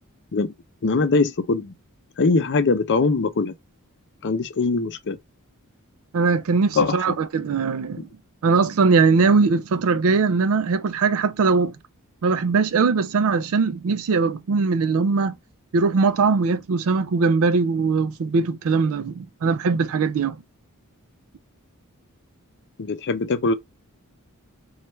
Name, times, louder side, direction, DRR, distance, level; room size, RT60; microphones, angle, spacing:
voice 1, 0.8-1.7 2.2-3.5 4.2-5.2 6.8-7.2 22.8-23.5, left 4 dB, 55° left, 0.6 m, -22 dB
voice 2, 6.1-8.1 8.4-11.7 12.2-15.4 15.7-20.4, right 4 dB, 70° right, 0.4 m, -20 dB
3.2 x 2.4 x 4.2 m
head